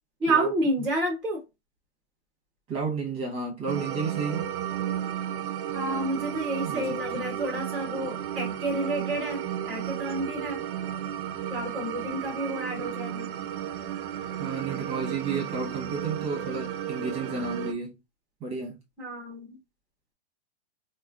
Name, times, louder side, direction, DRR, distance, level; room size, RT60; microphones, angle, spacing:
voice 1, 0.2-1.4 5.7-9.4 9.7-10.6 11.5-13.3 19.0-19.6, right 1 dB, ahead, 0.7 m, -29 dB
voice 2, 2.7-4.5 6.6-7.3 14.4-18.0 18.4-18.8, right 4 dB, 20° right, 1.1 m, -32 dB
sound 1, 3.7-17.7, right 10 dB, 55° right, 0.5 m, -33 dB
4.1 x 2.2 x 2.4 m
hypercardioid pair, 155°, 33 cm